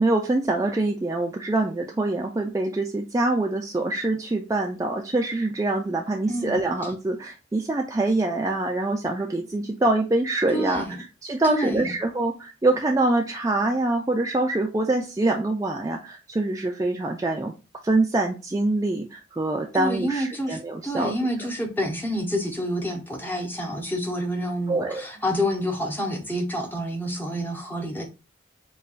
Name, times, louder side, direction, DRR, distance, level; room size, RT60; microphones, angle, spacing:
voice 1, 0.0-10.8 11.2-17.5 17.8-21.1 24.7-25.1, right 2 dB, 15° right, 0.3 m, -25 dB
voice 2, 10.5-11.0 11.4-11.9 19.7-28.1, equal, 10° left, 0.8 m, -28 dB
5.1 x 2.3 x 2.4 m
head